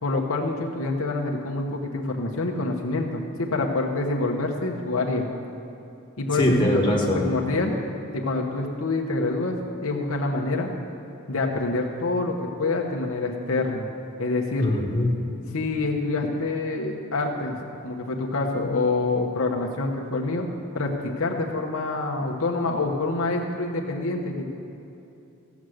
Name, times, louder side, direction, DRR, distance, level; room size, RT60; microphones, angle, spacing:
voice 1, 0.0-5.3 6.2-7.7 8.1-10.7 11.3-13.9 14.2-14.7 15.5-17.6 17.8-20.5 20.7-24.5, left 2 dB, 70° left, 0 dB, 1.0 m, -26 dB
voice 2, 6.4-7.2 14.6-15.2, left 1 dB, 20° left, -2 dB, 1.6 m, -22 dB
15.5 x 7.2 x 6.4 m, 2.8 s
head